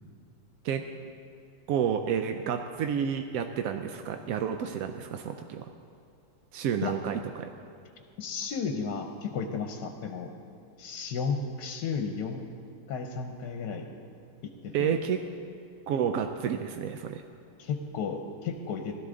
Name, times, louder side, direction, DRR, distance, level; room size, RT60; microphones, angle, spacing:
voice 1, 1.7-5.7 6.5-7.5 14.7-15.2 15.9-17.2, right 8 dB, 75° right, 7 dB, 0.8 m, -30 dB
voice 2, 8.2-10.3 10.8-12.5 12.9-13.9 14.4-15.0 17.6-18.9, left 5 dB, 70° left, 4 dB, 1.3 m, -33 dB
16.5 x 12.5 x 3.7 m, 2.5 s
omnidirectional pair, 1.9 m